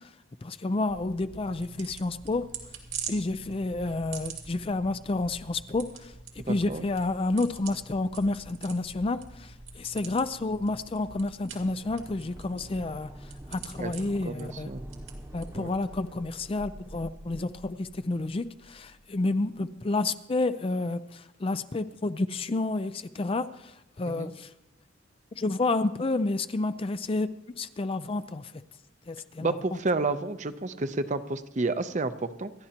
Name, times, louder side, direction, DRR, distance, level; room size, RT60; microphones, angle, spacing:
voice 1, 0.4-2.5 3.1-6.1 6.4-13.1 13.5-14.7 15.3-23.7 24.0-24.5 25.3-27.3 27.6-28.6 29.1-29.6, left 2 dB, 30° left, 11 dB, 0.4 m, -30 dB
sound 1, 0.9-16.1, right 5 dB, 75° right, 2.4 m, -45 dB
voice 2, 6.5-6.8 13.8-13.9 14.2-14.8 15.5-15.7 24.1-24.3 29.4-32.5, right 3 dB, 40° right, 10 dB, 0.6 m, -30 dB
sound 2, 11.5-19.2 19.5-19.6, right 1 dB, 15° right, 1.0 m, -47 dB
27.0 x 11.0 x 2.9 m, 0.92 s
head